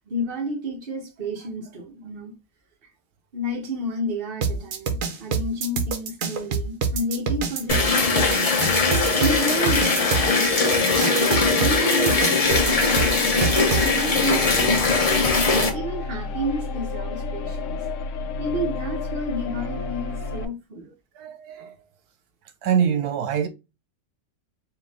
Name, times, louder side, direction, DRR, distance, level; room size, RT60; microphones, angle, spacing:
voice 1, 0.1-2.3 3.3-8.5 9.2-11.0 11.5-15.1 15.7-17.8 18.4-20.9, equal, 40° right, 1.1 m, -30 dB
sound 1, 4.4-13.9, right 5 dB, 65° right, 1.1 m, -26 dB
sound 2, 7.7-15.7, left 3 dB, 40° left, 0.5 m, -20 dB
sound 3, 12.5-20.5, left 4 dB, 65° left, 0.8 m, -31 dB
voice 2, 21.1-21.7 22.6-23.5, right 8 dB, 85° right, 1.2 m, -24 dB
4.6 x 2.5 x 3.5 m
omnidirectional pair, 1.6 m